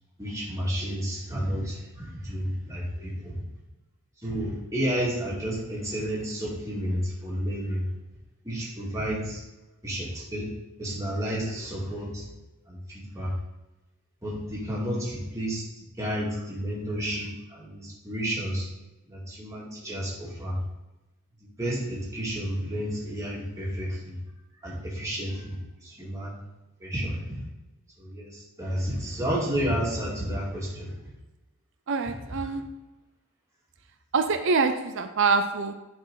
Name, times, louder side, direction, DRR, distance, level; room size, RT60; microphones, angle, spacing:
voice 1, 0.2-3.4 4.2-7.9 8.4-9.4 9.8-10.5 10.8-12.2 12.7-13.3 14.2-18.7 19.1-20.6 21.6-24.2 24.6-26.4 26.8-27.4 28.0-30.9, equal, 15° right, -5 dB, 2.2 m, -31 dB
voice 2, 31.9-32.6 34.1-35.7, right 4 dB, 55° right, 8 dB, 0.5 m, -25 dB
10.5 x 4.4 x 3.9 m, 1.0 s
head